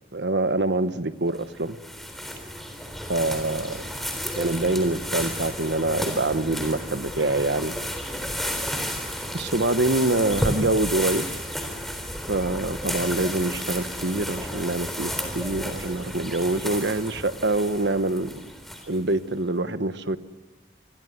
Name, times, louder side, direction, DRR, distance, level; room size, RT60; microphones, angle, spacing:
voice 1, 0.1-1.8 3.1-3.8 4.3-7.8 9.3-11.2 12.3-18.5 18.9-20.2, right 2 dB, 75° right, 11 dB, 1.2 m, -25 dB
sound 1, 1.3-19.1, equal, ahead, 3.7 m, -32 dB
27.5 x 22.5 x 9.6 m, 1.3 s
head